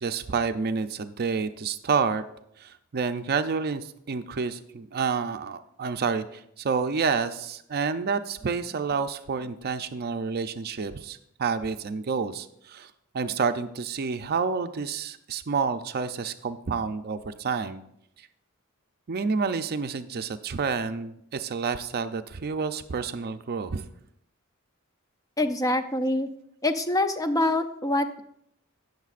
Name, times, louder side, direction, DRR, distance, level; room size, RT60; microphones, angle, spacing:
voice 1, 0.0-2.2 2.6-17.8 19.1-23.9, right 5 dB, 45° right, 10 dB, 0.5 m, -29 dB
voice 2, 25.4-26.3 26.6-28.2, left 1 dB, 15° left, 8 dB, 0.4 m, -25 dB
17.5 x 6.6 x 2.5 m, 0.76 s
head